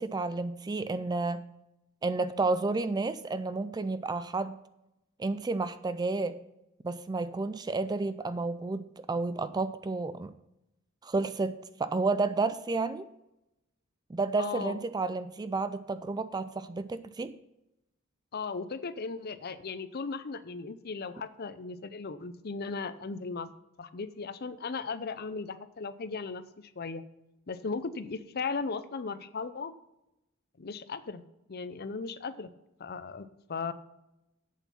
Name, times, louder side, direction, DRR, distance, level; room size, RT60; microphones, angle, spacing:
voice 1, 0.0-1.4 2.0-4.6 5.2-6.4 6.8-10.3 11.0-13.1 14.1-17.3, right 3 dB, 20° right, 14 dB, 0.3 m, -31 dB
voice 2, 14.4-14.8 18.3-23.5 23.8-27.0 27.5-29.7 30.6-31.2 31.5-32.5 32.8-33.7, left 4 dB, 45° left, 13 dB, 0.6 m, -37 dB
8.4 x 7.3 x 5.7 m, 0.89 s
head